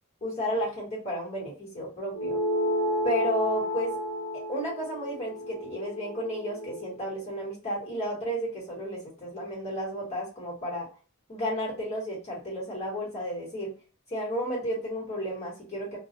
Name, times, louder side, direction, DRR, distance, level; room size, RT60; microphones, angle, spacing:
voice 1, 0.2-2.4 3.0-4.0 4.5-10.8 11.3-13.7 14.1-16.0, equal, 30° left, -4 dB, 1.3 m, -32 dB
sound 1, 2.1-6.9, equal, 55° left, 0.7 m, -31 dB
2.3 x 2.3 x 2.7 m, 0.35 s
head